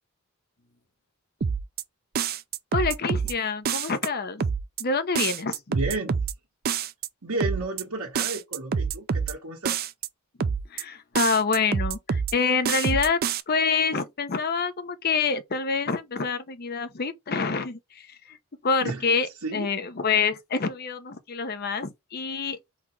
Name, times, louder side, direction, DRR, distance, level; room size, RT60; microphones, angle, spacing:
sound 1, 1.4-1.8 2.2-3.3 3.7-4.1 4.4-4.8 5.2-6.3 6.6-7.1 7.4-7.8 8.2-9.3 9.7-10.1 10.4-10.8 11.1-12.3 12.6-13.4, right 6 dB, 45° right, 0.4 m, -27 dB
voice 1, 2.7-4.4 4.8-5.6 10.7-13.2 13.5-18.4 18.6-19.3 19.5-22.6, left 5 dB, 45° left, 0.7 m, -26 dB
voice 2, 5.7-6.2 7.2-9.8 18.8-19.7, right 2 dB, 85° right, 1.3 m, -32 dB
4.0 x 2.9 x 4.6 m
head